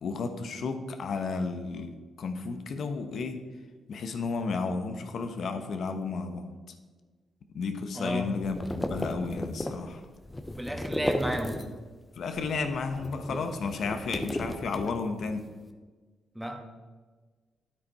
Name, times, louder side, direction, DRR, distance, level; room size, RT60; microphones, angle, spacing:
voice 1, 0.0-3.4 3.9-6.4 7.5-10.1 12.2-15.5, left 4 dB, 65° left, 7 dB, 1.1 m, -32 dB
voice 2, 7.9-8.3 10.5-11.6 16.3-16.6, right 1 dB, 5° right, 3 dB, 1.6 m, -32 dB
sound 1, 8.0-12.0 12.3-15.4, left 1 dB, 15° left, 0.9 m, -35 dB
9.8 x 8.3 x 4.2 m, 1.4 s
cardioid pair, 70°, 0 cm